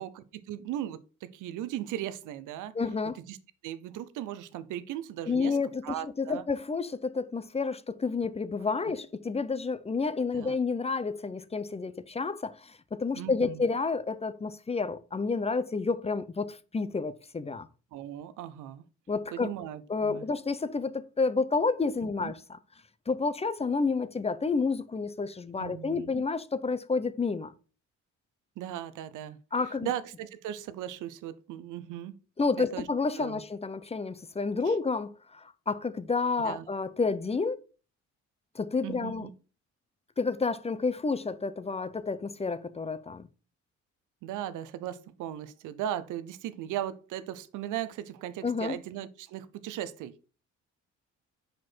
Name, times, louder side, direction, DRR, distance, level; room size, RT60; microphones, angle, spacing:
voice 1, 0.0-2.7 3.3-3.4 3.6-5.6 5.8-6.4 8.8-8.9 10.3-10.5 13.2-13.6 17.9-18.8 19.3-20.2 22.2-22.3 25.6-26.2 28.6-29.4 29.8-32.1 32.6-32.9 33.2-33.4 34.6-34.7 36.4-36.7 38.8-39.3 44.2-50.3, right 11 dB, 85° right, 0.6 m, -37 dB
voice 2, 2.7-3.2 5.3-17.7 19.1-19.5 19.9-22.6 23.1-27.5 29.5-29.9 32.4-37.6 38.5-39.3 40.2-43.3 48.4-48.8, left 4 dB, 20° left, 0.5 m, -30 dB
6.0 x 5.0 x 4.4 m
cardioid pair, 90°, 30 cm